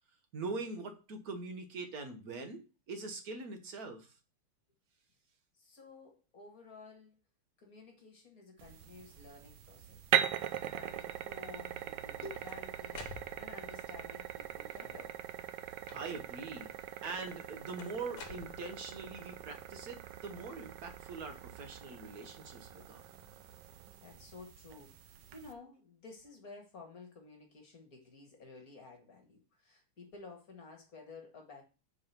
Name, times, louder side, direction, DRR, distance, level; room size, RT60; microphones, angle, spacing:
voice 1, 0.3-4.1 15.9-16.7 17.0-23.0, right 3 dB, 50° right, 6 dB, 1.4 m, -43 dB
voice 2, 5.6-7.2 7.6-10.0 10.6-13.1 13.4-15.2 24.0-31.6, left 3 dB, 45° left, 2 dB, 1.8 m, -52 dB
sound 1, 8.6-25.5, right 10 dB, 70° right, 1.1 m, -40 dB
sound 2, 11.9-13.8 14.6-15.2 15.9-16.4 17.8-19.1, left 6 dB, 85° left, 1.9 m, -51 dB
4.9 x 4.8 x 5.8 m, 0.32 s
omnidirectional pair, 2.4 m